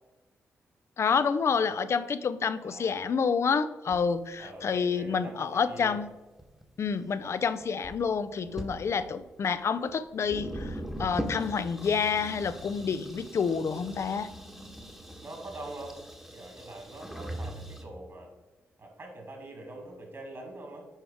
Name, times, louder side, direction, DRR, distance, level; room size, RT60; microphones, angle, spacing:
voice 1, 1.0-6.1 6.8-14.3, left 6 dB, 60° left, 13 dB, 0.5 m, -28 dB
voice 2, 2.6-3.0 4.4-6.0 15.2-16.0 16.3-18.3 18.8-20.8, right 2 dB, 50° right, 1 dB, 2.5 m, -44 dB
sound 1, 3.9-4.0 5.1-5.2 5.8-5.9 6.4-7.2 7.6-8.1 8.5-8.7 9.6-9.7 9.9-10.0 10.2-17.8, right 1 dB, 5° right, 1.2 m, -40 dB
8.7 x 4.8 x 3.5 m, 1.1 s
supercardioid pair, 55°, 5 cm